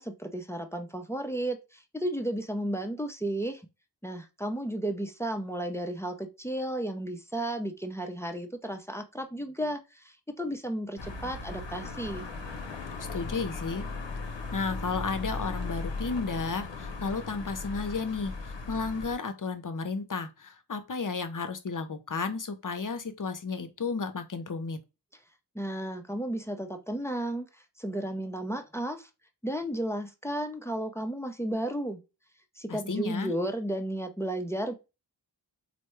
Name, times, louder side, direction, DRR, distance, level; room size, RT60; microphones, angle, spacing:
voice 1, 0.0-3.6 4.0-12.3 25.5-27.5 27.8-29.1 29.4-32.0 32.6-34.7, right 1 dB, 5° left, 0.6 m, -33 dB
sound 1, 11.0-19.1, left 3 dB, 85° left, 0.7 m, -37 dB
voice 2, 13.1-13.8 14.5-24.8 32.7-33.3, left 4 dB, 50° left, 0.7 m, -33 dB
4.2 x 2.2 x 3.0 m
wide cardioid pair, 45°, 43 cm